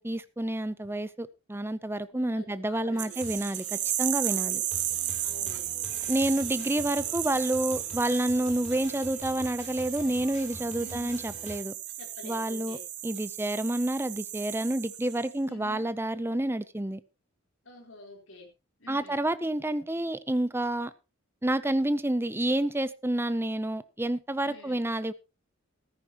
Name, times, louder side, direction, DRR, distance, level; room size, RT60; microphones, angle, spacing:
voice 1, 0.0-4.6 6.1-11.7 12.2-12.8 13.0-17.0 18.9-20.9 21.4-25.1, right 1 dB, 10° right, 14 dB, 0.6 m, -29 dB
voice 2, 2.1-3.2 4.2-4.6 5.2-5.6 10.8-11.2 12.0-12.8 15.4-15.8 17.6-18.5 18.8-19.2 24.4-24.8, left 1 dB, 65° left, 1 dB, 4.1 m, -48 dB
sound 1, 2.9-11.6, left 1 dB, 30° left, 3.5 m, -47 dB
sound 2, 3.0-15.3, right 13 dB, 55° right, 1.3 m, -34 dB
14.5 x 13.5 x 3.0 m, 0.28 s
head